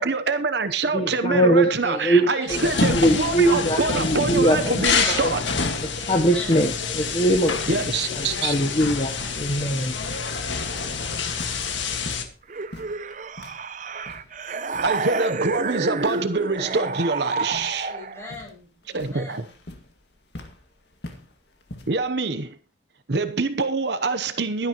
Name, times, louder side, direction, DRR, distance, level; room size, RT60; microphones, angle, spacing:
voice 1, 0.0-5.4 7.7-8.5 14.8-17.9 18.9-19.4 21.9-22.6 23.1-24.7, right 3 dB, 65° right, 0.9 m, -25 dB
voice 2, 0.9-4.8 5.1-5.3 5.8-7.8 8.1-10.0, right 1 dB, 30° left, 1.0 m, -22 dB
voice 3, 1.8-4.2 5.8-6.6 8.0-8.4 17.2-17.6 17.8-19.5, left 3 dB, 15° left, 7.9 m, -42 dB
sound 1, 2.5-12.2, left 4 dB, 80° left, 1.8 m, -27 dB
sound 2, 6.9-22.1, left 1 dB, 65° left, 2.1 m, -45 dB
sound 3, 12.5-18.3, right 4 dB, 40° right, 0.6 m, -29 dB
16.0 x 12.0 x 3.0 m
head